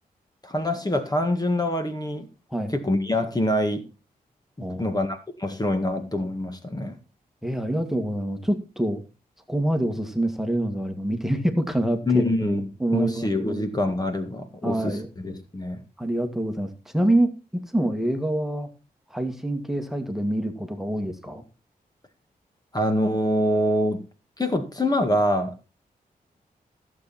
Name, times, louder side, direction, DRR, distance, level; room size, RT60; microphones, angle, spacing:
voice 1, 0.4-2.3 2.7-3.8 4.6-7.0 12.1-12.7 12.9-15.0 15.2-15.8 22.7-24.0 24.4-25.6, left 1 dB, 25° left, 7 dB, 1.9 m, -25 dB
voice 2, 4.6-5.0 7.4-9.0 9.5-12.3 12.8-13.7 14.6-15.1 16.0-18.7 19.1-21.4, right 1 dB, ahead, 7 dB, 2.0 m, -26 dB
15.0 x 7.5 x 4.3 m, 0.32 s
cardioid pair, 65°, 16 cm